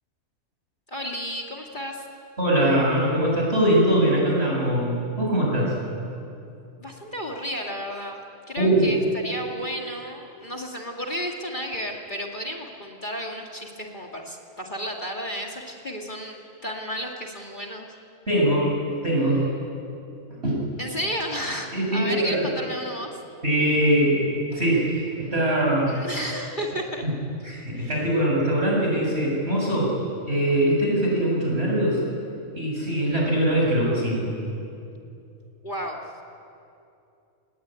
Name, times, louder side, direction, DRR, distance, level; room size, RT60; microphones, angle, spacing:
voice 1, 0.9-2.0 6.8-17.9 20.8-23.1 25.9-27.0 27.8-27.9 35.6-36.0, equal, 35° left, 0 dB, 2.3 m, -32 dB
voice 2, 2.4-5.8 8.6-8.9 18.3-18.7 19.0-19.5 20.3-20.6 21.7-22.5 23.4-26.0 27.0-27.1 27.4-30.0 30.3-32.0 32.5-34.3, right 1 dB, 45° right, -2 dB, 7.3 m, -22 dB
30.0 x 19.0 x 9.0 m, 2.7 s
omnidirectional pair, 1.5 m